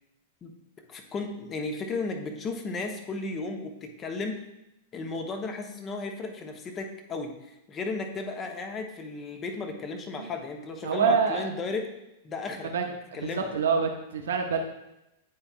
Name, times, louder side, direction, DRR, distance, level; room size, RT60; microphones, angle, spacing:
voice 1, 0.9-4.4 4.9-11.8 12.2-12.7 13.1-13.5, left 3 dB, 25° left, 4 dB, 0.9 m, -34 dB
voice 2, 10.8-11.5 12.6-12.9 13.1-14.6, right 6 dB, 70° right, 3 dB, 0.7 m, -26 dB
9.6 x 4.4 x 2.4 m, 0.90 s
figure-of-eight pair, 100°, 0 cm